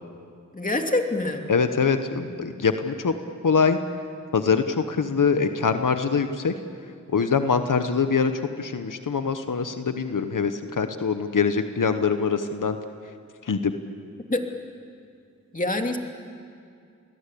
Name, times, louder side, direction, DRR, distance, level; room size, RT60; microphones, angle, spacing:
voice 1, 0.5-1.4 14.3-14.4 15.5-16.0, left 2 dB, 25° left, 3 dB, 2.9 m, -25 dB
voice 2, 1.5-3.1 3.4-3.8 4.3-6.5 7.1-12.8 13.4-13.8, left 5 dB, 90° left, 8 dB, 1.1 m, -23 dB
29.0 x 21.5 x 8.5 m, 2.3 s
cardioid pair, 45°, 31 cm